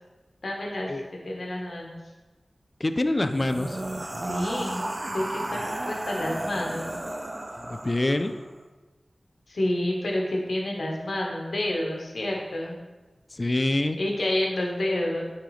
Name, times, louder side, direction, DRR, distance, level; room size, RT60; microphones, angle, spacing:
voice 1, 0.4-0.9 1.2-2.0 4.2-6.9 9.5-12.8 14.0-15.2, left 1 dB, 80° left, -1 dB, 1.2 m, -29 dB
voice 2, 2.8-3.8 7.6-8.3 13.3-14.0, left 2 dB, 35° left, 9 dB, 0.4 m, -25 dB
sound 1, 3.2-8.5, right 1 dB, 30° right, 0.4 m, -33 dB
8.7 x 3.8 x 3.2 m, 1.2 s
wide cardioid pair, 80°, 0 cm